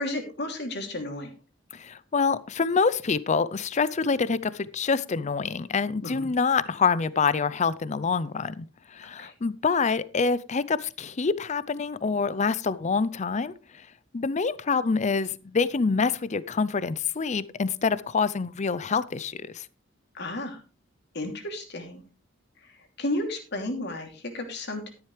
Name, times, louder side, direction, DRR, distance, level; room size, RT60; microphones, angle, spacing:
voice 1, 0.0-1.3 6.0-6.3 9.0-9.3 20.1-20.6 21.1-22.0 22.6-24.9, left 1 dB, 60° left, 4 dB, 2.9 m, -33 dB
voice 2, 1.7-13.5 14.1-19.7, left 5 dB, 35° left, 17 dB, 0.5 m, -26 dB
13.0 x 10.5 x 3.3 m, 0.34 s
head